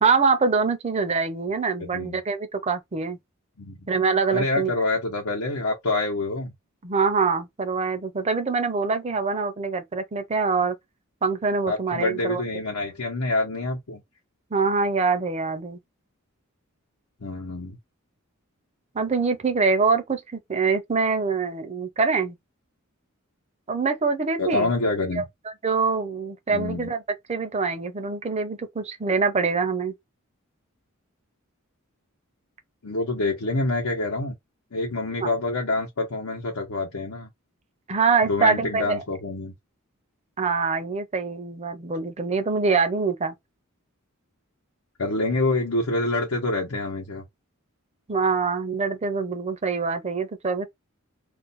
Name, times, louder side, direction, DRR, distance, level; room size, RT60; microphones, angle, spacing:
voice 1, 0.0-3.2 3.9-4.7 6.8-10.7 11.2-12.4 14.5-15.8 18.9-22.4 23.7-24.7 25.2-25.3 25.6-27.0 27.3-29.9 35.2-35.3 37.9-39.0 40.4-43.3 48.1-50.7, right 4 dB, 30° right, 0.5 m, -24 dB
voice 2, 1.8-2.2 3.6-3.9 4.3-6.5 11.7-14.0 17.2-17.8 24.4-25.2 26.5-26.9 32.8-34.3 34.7-37.3 38.2-39.5 45.0-47.2, left 2 dB, 90° left, 0.8 m, -26 dB
2.5 x 2.2 x 3.9 m
head